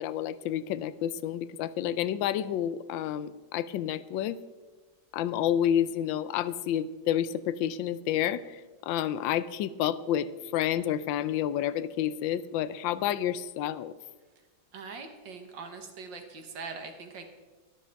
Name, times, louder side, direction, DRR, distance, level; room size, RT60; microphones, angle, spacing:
voice 1, 0.0-4.4 5.1-13.9, left 10 dB, 80° left, 16 dB, 1.3 m, -29 dB
voice 2, 14.7-17.2, right 4 dB, 70° right, 5 dB, 2.1 m, -42 dB
12.5 x 12.0 x 4.5 m, 1.3 s
omnidirectional pair, 2.1 m